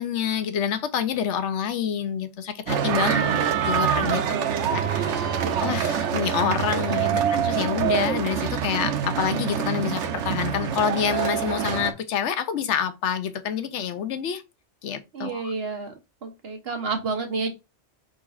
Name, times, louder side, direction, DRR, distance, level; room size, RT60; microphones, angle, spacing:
voice 1, 0.0-3.2 3.6-4.4 4.7-5.3 5.6-14.4 14.8-15.5, left 8 dB, 80° left, 1.0 m, -27 dB
sound 1, 2.7-11.9, right 8 dB, 90° right, 1.0 m, -25 dB
voice 2, 3.0-3.5 4.1-4.8 15.1-15.9 16.2-17.5, right 4 dB, 60° right, 1.2 m, -31 dB
5.1 x 3.8 x 2.3 m
omnidirectional pair, 1.2 m